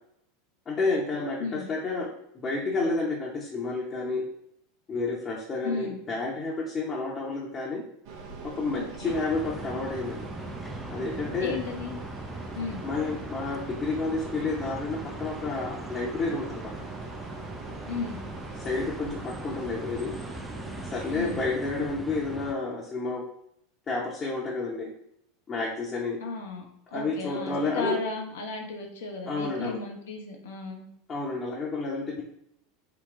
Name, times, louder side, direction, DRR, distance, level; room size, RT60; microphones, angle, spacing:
voice 1, 0.7-2.1 2.4-4.3 4.9-7.8 8.4-10.3 10.9-11.6 12.8-16.7 18.6-20.2 20.9-23.2 23.9-24.9 25.5-26.2 26.9-28.0 29.3-29.8 31.1-32.2, left 3 dB, 30° left, -4 dB, 0.8 m, -30 dB
voice 2, 5.6-6.0 8.7-9.2 11.4-11.9 12.6-12.8 17.9-18.2 21.1-21.4 26.2-26.6 26.9-30.8, left 4 dB, 70° left, 2 dB, 0.8 m, -35 dB
sound 1, 8.0-21.4, right 5 dB, 55° right, 0.7 m, -43 dB
sound 2, 9.0-22.5, right 1 dB, 5° right, 0.4 m, -40 dB
3.9 x 2.2 x 3.6 m, 0.73 s
figure-of-eight pair, 85°, 0 cm